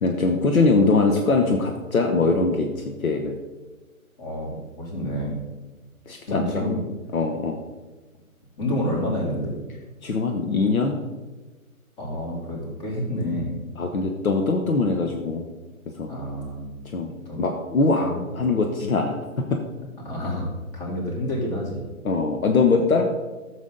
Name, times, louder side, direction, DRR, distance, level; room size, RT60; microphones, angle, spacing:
voice 1, 0.0-3.4 6.1-6.4 7.1-7.6 10.0-11.0 13.8-15.5 16.0-16.1 16.9-17.1 17.4-19.2 22.0-23.0, left 3 dB, 70° left, 3 dB, 1.3 m, -22 dB
voice 2, 4.2-5.3 6.3-6.8 8.6-9.5 12.0-13.6 16.1-16.8 17.3-17.4 18.0-18.2 20.0-21.9, left 1 dB, 30° left, -3 dB, 3.6 m, -28 dB
12.5 x 7.3 x 3.9 m, 1.2 s
figure-of-eight pair, 135°, 43 cm